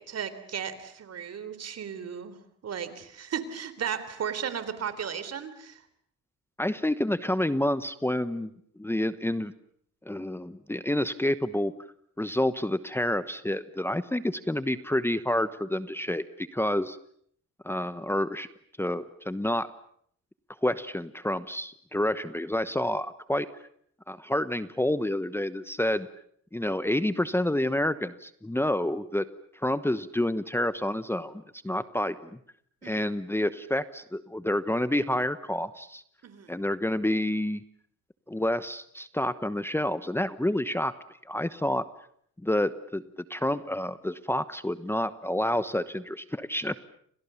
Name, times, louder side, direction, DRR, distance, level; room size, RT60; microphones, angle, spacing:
voice 1, 0.0-2.4 2.6-5.8 32.8-33.1 36.2-36.6, right 8 dB, 55° right, 13 dB, 3.8 m, -35 dB
voice 2, 6.6-8.5 8.8-9.5 10.0-11.7 12.2-17.0 17.6-18.5 18.8-19.7 20.6-23.5 24.1-26.1 26.5-29.3 29.5-32.4 32.8-36.0 36.5-37.6 38.3-40.9 41.2-41.8 42.4-43.0 43.3-46.8, left 1 dB, 10° left, 13 dB, 1.1 m, -28 dB
30.0 x 26.0 x 7.1 m, 0.66 s
cardioid pair, 90°, 30 cm